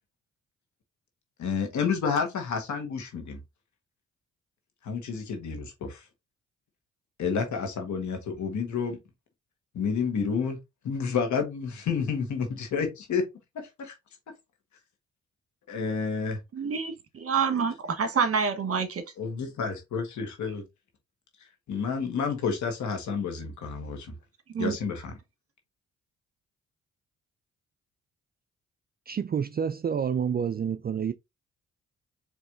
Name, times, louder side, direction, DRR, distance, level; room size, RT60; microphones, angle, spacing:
voice 1, 1.4-3.4 4.8-6.0 7.2-9.0 9.7-10.6 10.8-13.3 13.5-13.9 15.7-16.4 19.2-20.6 21.7-24.2 24.6-25.1, left 5 dB, 70° left, 1.5 m, -30 dB
voice 2, 16.5-16.9 17.2-19.0 24.5-24.7, right 6 dB, 50° right, 1.3 m, -27 dB
voice 3, 29.1-31.1, right 7 dB, 30° right, 0.4 m, -28 dB
4.6 x 3.2 x 2.6 m
supercardioid pair, 55°, 30 cm